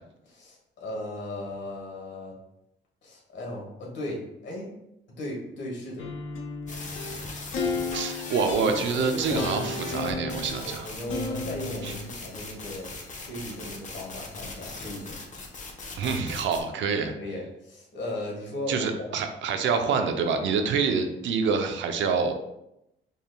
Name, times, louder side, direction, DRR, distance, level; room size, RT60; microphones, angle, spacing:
voice 1, 0.2-2.3 3.0-4.7 5.1-6.1 8.6-9.8 10.6-15.2 17.2-19.1, left 1 dB, 65° left, -2 dB, 1.5 m, -36 dB
sound 1, 6.0-12.1, left 3 dB, 85° left, 0.7 m, -34 dB
sound 2, 6.7-16.6, left 3 dB, 40° left, 0.9 m, -40 dB
voice 2, 7.9-10.9 11.8-11.9 16.0-17.1 18.7-22.4, right 5 dB, 70° right, 6 dB, 0.6 m, -26 dB
5.3 x 3.3 x 2.2 m, 0.85 s
cardioid pair, 90°, 20 cm